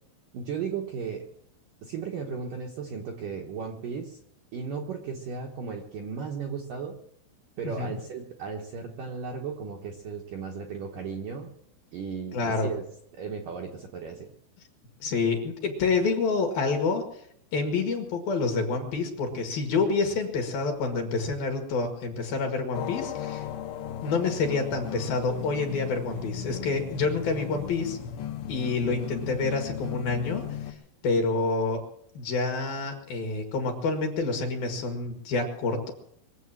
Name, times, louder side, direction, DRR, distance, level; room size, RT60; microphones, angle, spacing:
voice 1, 0.3-1.3 1.8-4.2 4.5-7.0 7.6-11.5 11.9-12.8 13.1-14.3, right 6 dB, 70° right, 0 dB, 2.2 m, -35 dB
voice 2, 12.3-12.7 15.0-17.0 17.5-23.5 24.0-28.0 28.5-30.7 31.0-31.8 32.1-35.9, left 4 dB, 55° left, 4 dB, 3.2 m, -28 dB
sound 1, 22.7-30.7, left 9 dB, 75° left, 3.0 m, -36 dB
23.0 x 8.0 x 7.4 m, 0.67 s
omnidirectional pair, 5.6 m